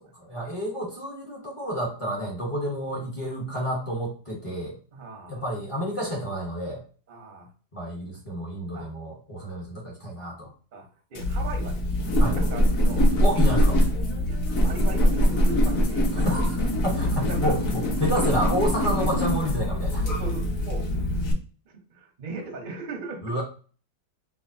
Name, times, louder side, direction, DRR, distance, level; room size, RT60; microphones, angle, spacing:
voice 1, 0.1-4.7 5.3-6.8 7.7-10.5 12.2-12.4 13.2-13.8 16.1-16.6 16.8-20.0 23.2-23.4, equal, 45° left, -4 dB, 0.4 m, -29 dB
voice 2, 4.9-5.4 7.1-7.5 8.7-8.9 10.7-13.1 14.3-16.4 17.3-17.6 20.0-20.9 21.7-23.4, right 3 dB, 60° right, 1 dB, 0.5 m, -39 dB
sound 1, 11.1-21.3, equal, 60° left, 1.0 m, -23 dB
4.8 x 2.2 x 2.6 m, 0.39 s
omnidirectional pair, 2.2 m